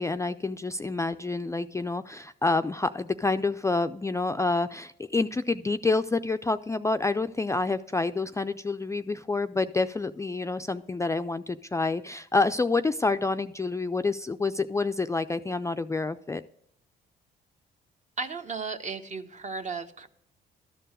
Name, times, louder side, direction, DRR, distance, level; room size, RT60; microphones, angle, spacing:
voice 1, 0.0-16.4, left 3 dB, 15° left, 9 dB, 0.3 m, -28 dB
voice 2, 18.2-20.1, right 4 dB, 40° right, 8 dB, 0.9 m, -35 dB
12.5 x 4.5 x 7.6 m, 0.74 s
supercardioid pair, 65°, 19 cm